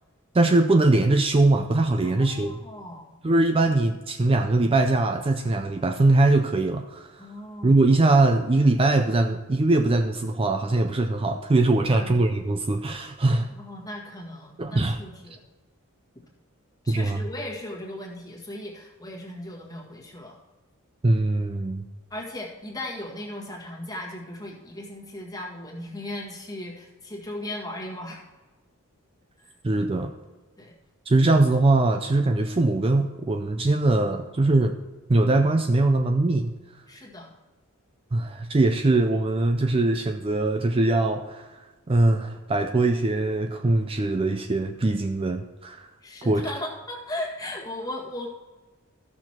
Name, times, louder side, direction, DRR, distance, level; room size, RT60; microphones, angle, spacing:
voice 1, 0.3-2.6 3.2-7.3 7.6-13.5 14.6-15.0 16.9-17.2 21.0-21.9 29.6-30.1 31.1-34.8 35.1-36.5 38.1-45.9 46.3-46.5, right 2 dB, 25° right, 6 dB, 0.4 m, -22 dB
voice 2, 2.0-3.0 7.2-7.8 11.8-12.1 13.5-15.4 16.2-16.3 16.8-20.4 22.1-28.2 29.4-29.5 30.6-30.7 36.9-37.3 46.0-48.3, left 1 dB, 15° left, -1 dB, 1.8 m, -37 dB
14.5 x 6.2 x 4.4 m, 1.2 s
head